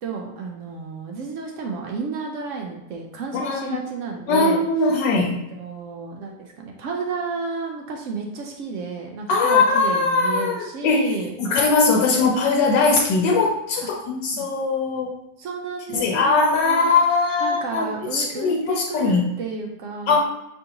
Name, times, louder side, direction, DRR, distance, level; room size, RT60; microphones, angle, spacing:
voice 1, 0.0-4.7 5.2-11.3 14.3-14.5 15.4-16.9 17.4-20.2, right 4 dB, 90° right, 1 dB, 0.6 m, -32 dB
voice 2, 3.4-3.8 4.3-5.4 9.3-11.1 11.4-15.2 15.9-19.3 20.1-20.2, left 4 dB, 85° left, -2 dB, 1.3 m, -20 dB
6.0 x 2.5 x 2.8 m, 0.86 s
omnidirectional pair, 1.9 m